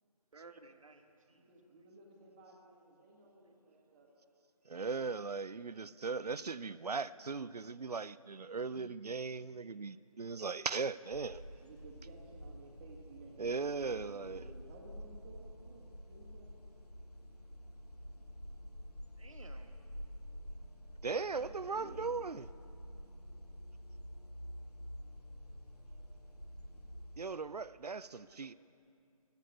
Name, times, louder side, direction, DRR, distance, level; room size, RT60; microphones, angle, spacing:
voice 1, 0.3-1.5 19.2-19.8 28.3-28.5, right 3 dB, 60° right, 5 dB, 1.3 m, -57 dB
voice 2, 1.3-4.1 8.3-9.0 9.9-10.0 11.6-16.5 21.1-22.3 26.7-26.8, right 2 dB, 15° right, -1 dB, 1.5 m, -56 dB
voice 3, 4.7-11.4 13.4-14.4 21.0-22.5 27.2-28.5, right 4 dB, 90° right, 17 dB, 0.5 m, -38 dB
sound 1, 11.1-27.2, equal, 85° left, 1.6 m, -49 dB
14.5 x 8.3 x 9.4 m, 2.5 s
figure-of-eight pair, 155°, 20 cm